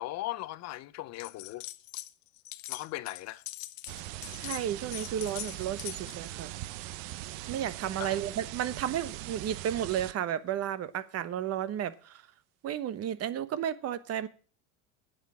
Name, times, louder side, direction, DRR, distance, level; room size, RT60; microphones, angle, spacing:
voice 1, 0.0-1.7 2.7-3.4 8.0-8.2, left 16 dB, 45° left, 0.6 m, -38 dB
sound 1, 1.2-2.1 2.4-6.2, left 18 dB, 85° left, 0.8 m, -42 dB
sound 2, 3.9-10.1, right 15 dB, 65° right, 0.8 m, -41 dB
voice 2, 4.3-6.5 7.5-12.2 12.6-14.3, right 10 dB, 40° right, 1.0 m, -33 dB
9.9 x 8.0 x 7.3 m
supercardioid pair, 115°, 38 cm